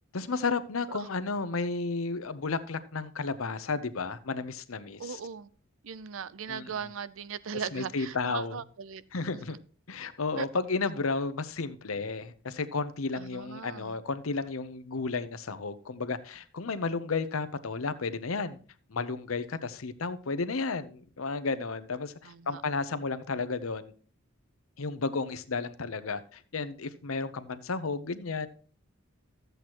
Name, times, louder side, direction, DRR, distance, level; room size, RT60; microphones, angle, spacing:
voice 1, 0.1-5.2 6.5-6.9 7.7-8.6 9.1-9.6 9.9-18.6 18.9-23.9 24.8-28.5, left 4 dB, 85° left, 12 dB, 0.8 m, -33 dB
voice 2, 5.0-5.5 5.8-9.0 10.4-10.5 13.1-13.9 22.2-22.6, right 6 dB, 70° right, 17 dB, 0.5 m, -38 dB
13.5 x 8.0 x 3.0 m, 0.42 s
head